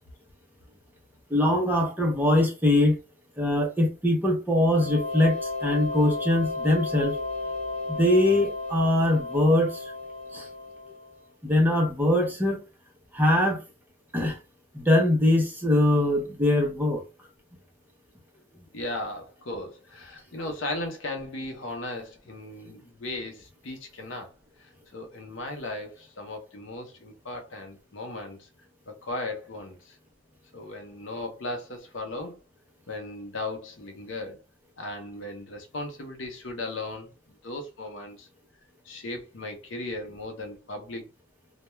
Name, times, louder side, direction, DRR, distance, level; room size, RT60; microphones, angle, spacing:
voice 1, 1.3-2.9 3.4-7.1 7.9-9.8 10.3-10.5 11.4-12.6 13.1-13.6 14.1-14.4 14.7-17.0, left 1 dB, 10° right, 0.6 m, -22 dB
sound 1, 4.6-11.2, left 3 dB, 35° left, 1.0 m, -34 dB
voice 2, 18.7-24.3 24.6-28.5 28.9-30.0 30.5-32.4 32.9-34.4 34.8-37.1 37.4-38.3 38.8-41.1, left 2 dB, 70° left, 0.7 m, -36 dB
2.2 x 2.2 x 3.0 m
head